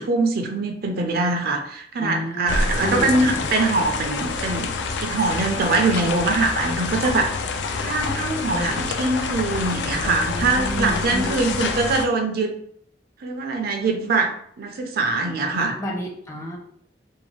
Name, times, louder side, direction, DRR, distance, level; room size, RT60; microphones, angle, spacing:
voice 1, 0.0-4.7 5.0-7.3 7.8-12.5 13.2-15.8, right 3 dB, 60° right, 4 dB, 0.4 m, -23 dB
voice 2, 2.0-3.5 10.0-11.6 15.5-16.6, equal, 15° left, 0 dB, 0.5 m, -31 dB
sound 1, 2.5-12.1, left 4 dB, 80° left, 0.3 m, -27 dB
2.6 x 2.2 x 3.1 m, 0.65 s
head